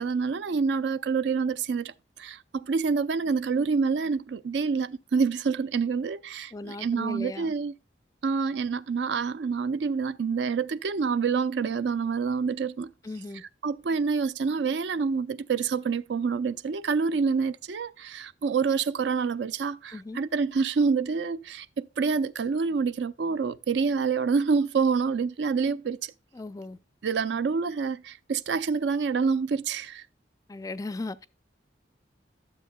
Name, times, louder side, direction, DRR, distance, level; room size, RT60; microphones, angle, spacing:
voice 1, 0.0-7.7 8.2-12.9 13.6-26.1 27.0-30.1, right 5 dB, 65° right, 0.4 m, -27 dB
voice 2, 6.5-7.5 13.0-13.4 19.9-20.2 26.3-26.8 30.5-31.3, left 2 dB, 20° left, 0.3 m, -37 dB
12.0 x 7.2 x 2.2 m
head